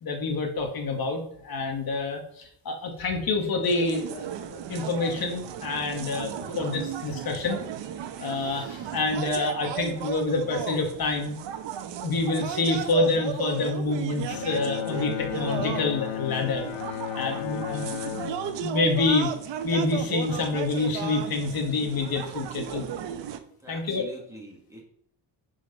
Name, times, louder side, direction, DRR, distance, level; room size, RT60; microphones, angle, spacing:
voice 1, 0.0-7.6 8.2-11.4 12.0-16.7 17.2-17.9 18.6-19.3 19.6-22.9 23.7-24.1, left 3 dB, 50° left, 3 dB, 1.8 m, -27 dB
sound 1, 3.6-23.4, right 8 dB, 70° right, 1.0 m, -35 dB
Bowed string instrument, 14.3-19.7, left 12 dB, 80° left, 0.8 m, -34 dB
voice 2, 23.6-24.8, right 1 dB, 5° right, -2 dB, 2.4 m, -44 dB
9.3 x 5.1 x 5.5 m, 0.68 s
cardioid pair, 140°, 44 cm